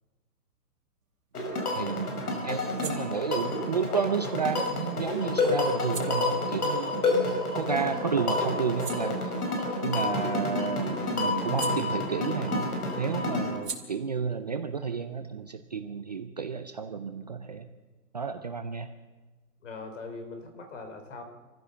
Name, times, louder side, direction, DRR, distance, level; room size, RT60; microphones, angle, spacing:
sound 1, 1.0-7.9 8.3-12.5 12.8-16.2, right 6 dB, 55° right, 4.0 m, -47 dB
sound 2, 1.3-13.6, left 2 dB, 65° left, 5.6 m, -29 dB
voice 1, 1.7-7.3 7.5-9.3 9.8-12.7 13.0-17.7 18.1-18.9, right 6 dB, 25° right, 7 dB, 0.6 m, -31 dB
voice 2, 19.6-21.2, left 3 dB, 45° left, 6 dB, 4.0 m, -41 dB
26.0 x 15.0 x 7.0 m, 1.3 s
hypercardioid pair, 160°, 48 cm